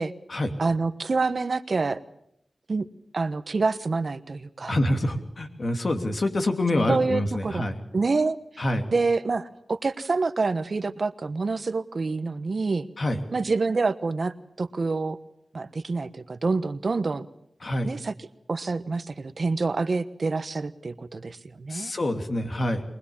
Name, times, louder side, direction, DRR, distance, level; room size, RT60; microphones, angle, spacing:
voice 1, 0.6-2.0 2.7-2.8 3.1-4.8 6.9-7.6 7.9-8.4 8.9-12.9 13.3-15.2 15.5-17.3 17.8-18.1 18.5-21.9, right 3 dB, 65° right, 13 dB, 1.1 m, -27 dB
voice 2, 4.7-7.8 8.6-8.9 13.0-13.2 17.6-17.9 21.7-22.8, left 1 dB, 60° left, 5 dB, 2.9 m, -26 dB
23.5 x 20.0 x 7.2 m, 0.74 s
cardioid pair, 50°, 0 cm